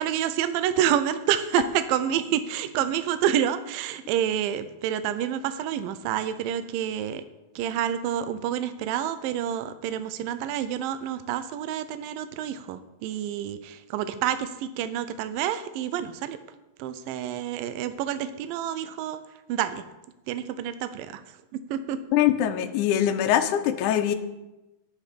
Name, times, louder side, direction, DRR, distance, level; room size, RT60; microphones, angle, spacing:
voice 1, 0.0-7.2 7.6-16.4 16.8-19.2 19.5-19.8 20.3-21.2 21.7-22.0, right 10 dB, 80° right, 11 dB, 2.3 m, -28 dB
voice 2, 22.1-24.1, left 11 dB, 75° left, 6 dB, 1.9 m, -23 dB
10.0 x 9.3 x 5.2 m, 1.0 s
omnidirectional pair, 4.1 m